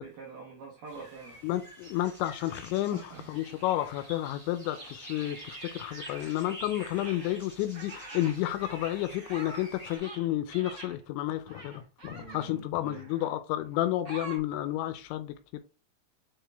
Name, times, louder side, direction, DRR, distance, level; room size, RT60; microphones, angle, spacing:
voice 1, 0.0-1.4 2.9-3.3 4.0-4.1 12.1-13.1, right 4 dB, 75° right, 2.0 m, -46 dB
sound 1, 0.9-10.0, right 1 dB, 25° right, 0.8 m, -48 dB
voice 2, 1.4-3.0 3.3-15.6, left 14 dB, 85° left, 2.7 m, -31 dB
sound 2, 2.6-4.1 4.6-6.5 6.8-10.9 11.5-12.5 12.9-13.4 14.0-14.4, right 2 dB, 60° right, 1.1 m, -47 dB
9.3 x 3.6 x 3.4 m
omnidirectional pair, 5.6 m